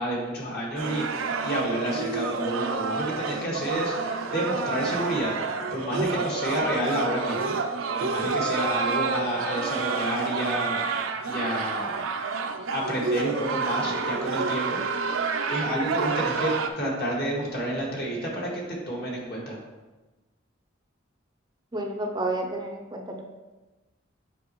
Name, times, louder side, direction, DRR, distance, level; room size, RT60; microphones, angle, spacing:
voice 1, 0.0-5.3 5.7-7.6 8.0-11.9 12.7-14.8 15.5-19.6, right 1 dB, 55° left, -4 dB, 1.8 m, -30 dB
sound 1, 0.8-16.7, right 4 dB, 70° right, 0.5 m, -29 dB
voice 2, 21.7-23.2, right 2 dB, 20° right, 2 dB, 0.5 m, -30 dB
7.1 x 5.4 x 3.0 m, 1.2 s
head